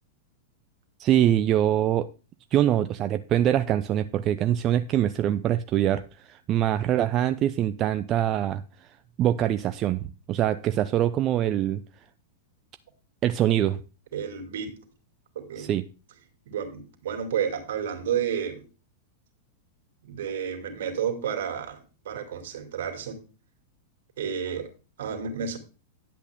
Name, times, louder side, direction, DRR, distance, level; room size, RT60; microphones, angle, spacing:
voice 1, 1.0-2.1 2.5-8.9 9.2-11.8 13.2-13.8 15.6-15.8, right 11 dB, 35° right, 0.5 m, -24 dB
voice 2, 14.1-14.8 15.3-15.7 16.5-18.6 20.0-23.2 24.2-24.7 25.0-25.6, right 8 dB, 65° right, 2.6 m, -31 dB
10.5 x 8.2 x 3.6 m
hypercardioid pair, 100°, 0 cm